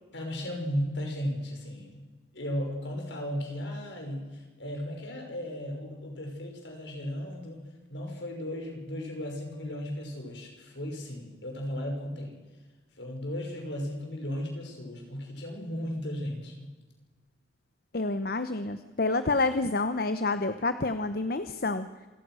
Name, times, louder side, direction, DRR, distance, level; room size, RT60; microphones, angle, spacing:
voice 1, 0.1-2.0 2.3-12.3 13.0-16.7, equal, 70° left, 2 dB, 5.7 m, -35 dB
voice 2, 17.9-21.9, left 3 dB, 50° left, 10 dB, 0.9 m, -28 dB
27.0 x 18.0 x 6.3 m, 1.3 s
head